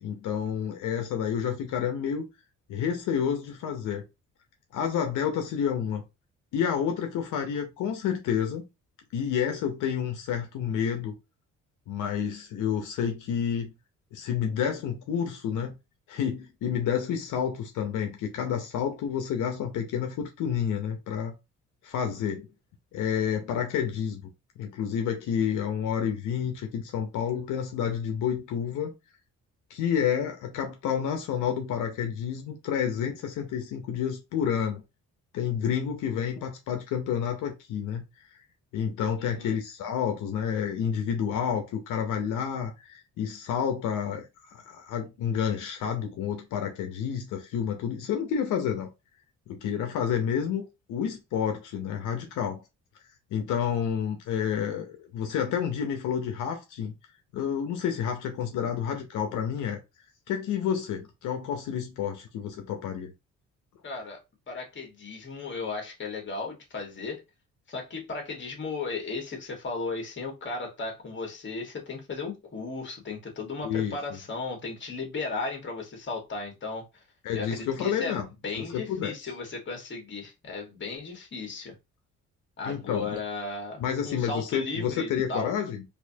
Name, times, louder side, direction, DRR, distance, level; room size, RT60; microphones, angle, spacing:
voice 1, 0.0-2.2 2.7-4.0 4.7-6.0 6.5-8.6 9.1-11.1 11.9-13.7 14.1-15.7 16.1-21.3 21.8-22.5 22.9-24.2 24.6-28.9 29.7-34.8 35.3-38.0 38.7-48.9 49.5-52.6 53.3-56.9 57.3-59.8 60.3-63.1 73.6-74.0 77.2-78.3 78.7-79.1 82.6-83.2 83.8-85.8, left 8 dB, 85° left, 0.8 m, -29 dB
voice 2, 39.2-39.6 63.8-64.2 64.5-67.2 67.7-77.0 77.3-81.7 82.6-85.6, left 3 dB, 40° left, 1.5 m, -35 dB
4.2 x 2.7 x 2.7 m
cardioid pair, 90°, 30 cm